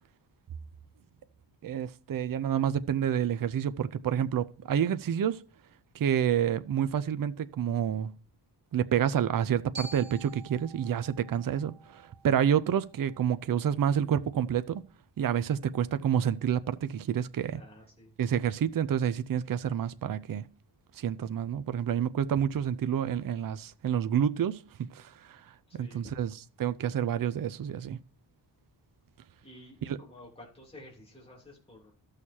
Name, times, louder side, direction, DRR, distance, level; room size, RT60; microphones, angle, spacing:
voice 1, 1.6-5.4 5.9-8.1 8.7-14.8 15.2-17.6 18.2-20.5 21.0-25.4 25.8-26.3 26.6-28.0 29.8-30.0, right 9 dB, 50° right, 0.5 m, -28 dB
Glockenspiel, 9.7-13.9, right 2 dB, 80° right, 1.8 m, -49 dB
voice 2, 17.5-18.1 25.7-26.1 29.4-31.9, left 1 dB, 15° left, 3.1 m, -51 dB
13.5 x 6.5 x 2.8 m
wide cardioid pair, 165°, 42 cm